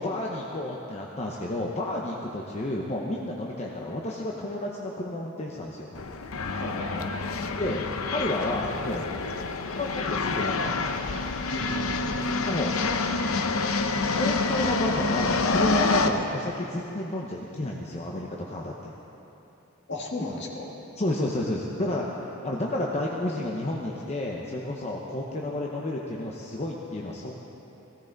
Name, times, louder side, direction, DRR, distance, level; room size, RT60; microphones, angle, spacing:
voice 1, 0.0-6.0 7.6-7.8 8.1-9.1 9.7-11.0 12.4-12.7 14.2-18.9 21.0-27.3, left 1 dB, 30° left, -2 dB, 0.9 m, -31 dB
sound 1, 5.9-16.1, left 3 dB, 75° left, 0.7 m, -27 dB
voice 2, 6.6-7.1 11.5-12.1 16.1-16.2 19.9-20.7, left 2 dB, 55° left, -1 dB, 1.8 m, -34 dB
17.5 x 16.0 x 4.0 m, 3.0 s
head